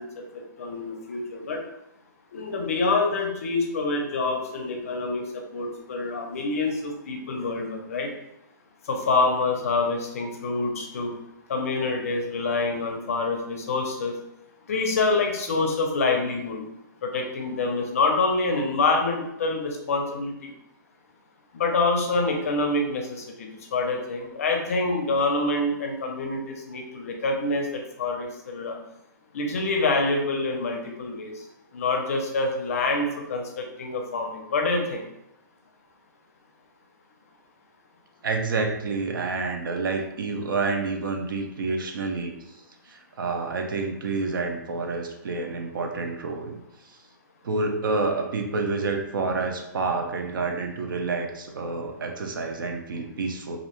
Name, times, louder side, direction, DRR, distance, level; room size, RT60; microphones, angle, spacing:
voice 1, 0.0-1.6 2.3-8.1 8.8-11.2 11.5-14.2 14.7-16.6 17.0-20.5 21.5-28.8 29.3-31.4 31.7-35.0, left 3 dB, 45° left, 2 dB, 0.5 m, -26 dB
voice 2, 38.2-42.3 42.9-46.6 47.4-53.6, right 3 dB, 90° right, 4 dB, 0.5 m, -28 dB
2.5 x 2.0 x 2.9 m, 0.85 s
hypercardioid pair, 175°, 11 cm